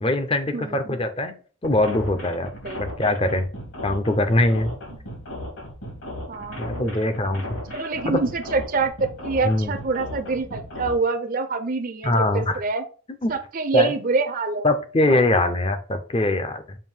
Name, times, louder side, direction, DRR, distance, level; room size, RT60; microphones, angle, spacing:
voice 1, 0.0-1.4 1.6-2.5 2.8-3.4 3.8-4.8 6.6-7.4 8.0-8.2 9.4-9.7 12.0-12.5 13.2-13.3 13.7-13.9 14.6-16.8, left 2 dB, 25° left, 8 dB, 0.6 m, -22 dB
voice 2, 0.5-1.1 2.6-2.8 6.3-7.2 7.7-12.8 13.3-14.6 15.1-15.4, right 3 dB, 40° right, 8 dB, 0.5 m, -26 dB
sound 1, 1.6-10.9, left 1 dB, 70° left, 2.6 m, -36 dB
7.4 x 2.6 x 5.5 m, 0.40 s
head